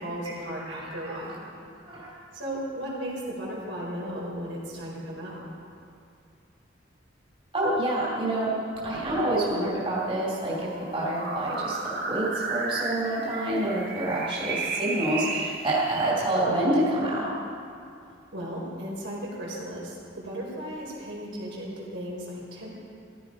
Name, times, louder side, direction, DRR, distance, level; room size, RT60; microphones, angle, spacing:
voice 1, 0.0-1.5 2.3-5.5 18.3-22.7, equal, 80° right, -5 dB, 4.3 m, -35 dB
voice 2, 0.7-1.2 1.8-2.1 7.5-8.5 8.8-11.8 12.1-17.3, right 1 dB, 30° right, -6 dB, 2.7 m, -27 dB
sound 1, 8.7-16.1, right 4 dB, 50° right, 1.3 m, -34 dB
15.0 x 13.0 x 4.9 m, 2.5 s
head